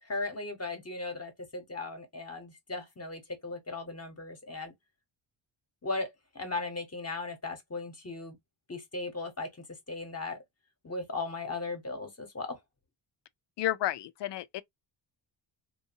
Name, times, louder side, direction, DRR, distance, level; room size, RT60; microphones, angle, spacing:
voice 1, 0.0-4.7 5.8-8.4 8.7-9.5 9.9-10.4 10.8-12.6, left 3 dB, 30° left, 1.0 m, -37 dB
voice 2, 13.6-14.6, left 14 dB, 60° left, 0.5 m, -31 dB
2.6 x 2.3 x 2.6 m
cardioid pair, 85°, 49 cm